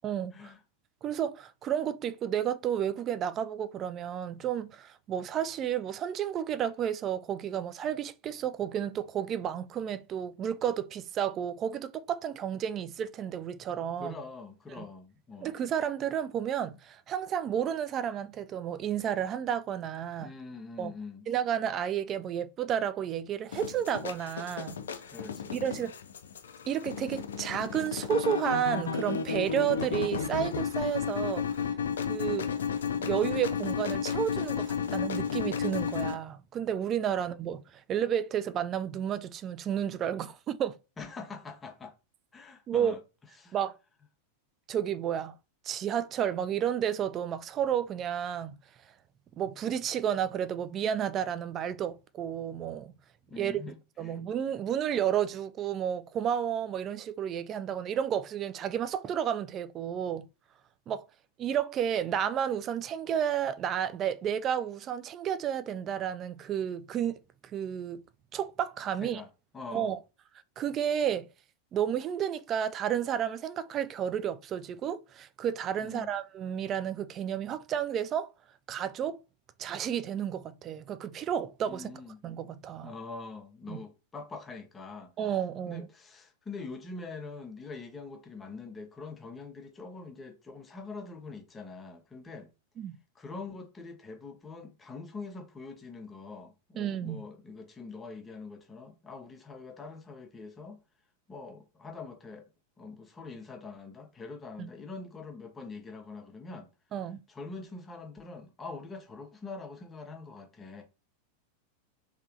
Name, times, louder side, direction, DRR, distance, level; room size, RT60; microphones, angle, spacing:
voice 1, 0.0-0.5 1.0-14.2 14.7-14.8 15.4-20.3 20.8-20.9 21.3-24.8 25.5-25.9 26.7-31.5 32.0-32.5 33.0-40.8 42.7-43.0 43.5-43.7 44.7-45.4 45.6-48.6 49.4-53.0 53.4-53.6 54.0-60.3 60.9-61.1 61.4-67.2 67.5-68.0 68.3-69.2 69.7-70.0 70.6-71.3 71.7-78.3 78.7-79.2 79.6-81.9 82.2-82.9 83.7-83.8 85.2-85.9 92.8-93.0 96.8-97.2 104.6-104.7 106.9-107.2, right 9 dB, 30° right, 0.3 m, -31 dB
voice 2, 14.0-15.5 20.2-21.3 25.1-25.9 37.1-37.3 41.0-41.9 42.3-43.0 43.4-43.6 53.3-54.2 69.0-69.9 75.8-76.1 81.7-82.2 82.8-85.1 85.7-92.5 93.1-100.8 101.3-102.5 102.8-106.7 107.3-110.8, left 4 dB, 15° left, 0.7 m, -44 dB
sound 1, 23.5-36.1, left 7 dB, 65° left, 0.4 m, -33 dB
3.3 x 2.8 x 2.5 m
figure-of-eight pair, 90°, 0 cm